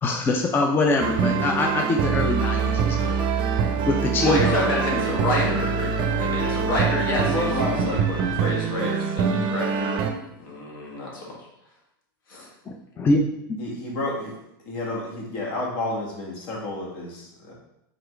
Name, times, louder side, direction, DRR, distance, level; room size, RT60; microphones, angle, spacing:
voice 1, 0.0-3.2 3.9-5.2 5.5-5.6 12.7-13.2, left 2 dB, 20° left, 2 dB, 0.4 m, -24 dB
sound 1, 1.0-10.1, right 6 dB, 40° right, 0.5 m, -24 dB
voice 2, 4.2-5.9 6.2-7.5 7.8-10.0 10.4-11.4 12.3-12.5, left 1 dB, 80° left, -3 dB, 1.5 m, -28 dB
voice 3, 7.2-8.0 8.8-8.9 13.6-14.4 14.6-17.5, left 1 dB, 55° left, -2 dB, 1.5 m, -30 dB
3.8 x 3.5 x 3.2 m, 0.80 s
hypercardioid pair, 115°, 12 cm